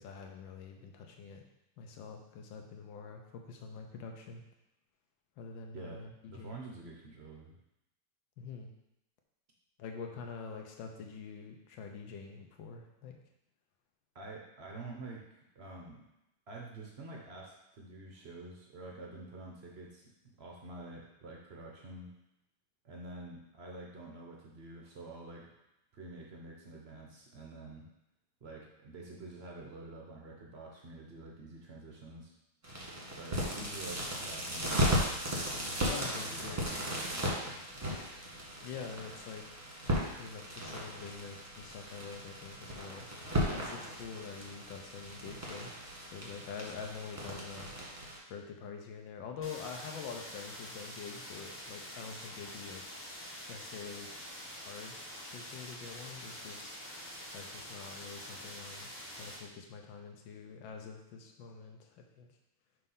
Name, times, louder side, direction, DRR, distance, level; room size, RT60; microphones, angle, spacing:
voice 1, 0.0-1.4 1.8-4.4 5.4-6.6 8.4-8.7 9.8-13.2 35.9-36.6 38.6-39.4 40.1-43.1 43.5-45.8 46.1-52.8 53.5-54.2 54.5-55.0 55.3-56.8 57.3-62.3, left 5 dB, 70° left, 3 dB, 1.5 m, -46 dB
voice 2, 5.7-7.6 14.1-15.3 15.5-16.1 16.5-20.0 20.4-22.1 22.8-25.5 25.9-27.9 28.4-32.3 33.2-35.1 35.9-37.6, right 2 dB, 60° right, -1 dB, 0.6 m, -48 dB
sound 1, 32.6-48.2, equal, 20° right, 1.2 m, -36 dB
sound 2, 49.4-59.4, equal, 15° left, 0.5 m, -46 dB
6.0 x 3.3 x 5.5 m, 0.88 s
omnidirectional pair, 2.2 m